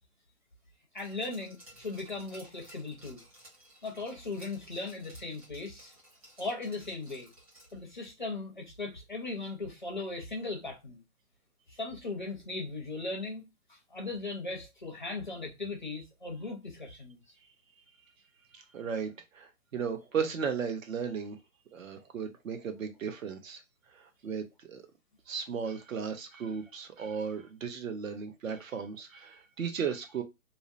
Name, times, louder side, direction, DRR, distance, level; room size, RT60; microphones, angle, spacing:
voice 1, 0.9-3.2 3.8-5.9 6.4-7.3 7.7-11.0 11.7-13.4 13.7-17.2, left 3 dB, 35° left, 0.4 m, -38 dB
Glass, 1.0-7.9 8.2-8.3, right 1 dB, 25° right, 0.9 m, -56 dB
voice 2, 18.5-21.4 21.7-23.6 23.9-24.8 25.3-30.2, right 6 dB, 65° right, 0.7 m, -35 dB
2.7 x 2.0 x 2.4 m
hypercardioid pair, 170°, 44 cm